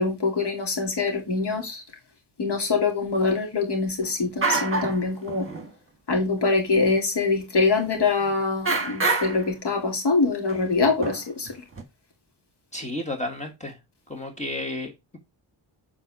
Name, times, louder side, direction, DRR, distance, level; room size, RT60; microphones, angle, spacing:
voice 1, 0.0-1.8 2.4-5.5 6.1-11.5, left 4 dB, 70° left, 2.5 m, -24 dB
sound 1, 4.0-4.1 4.4-5.0 5.3-5.7 6.4-6.5 6.9-7.0 8.2-8.3 8.6-9.5 10.5-10.6 11.0-11.8, right 3 dB, 30° right, 1.5 m, -27 dB
voice 2, 12.7-13.7 14.1-15.2, left 1 dB, 15° left, 1.5 m, -32 dB
7.9 x 4.4 x 4.7 m
wide cardioid pair, 160°, 42 cm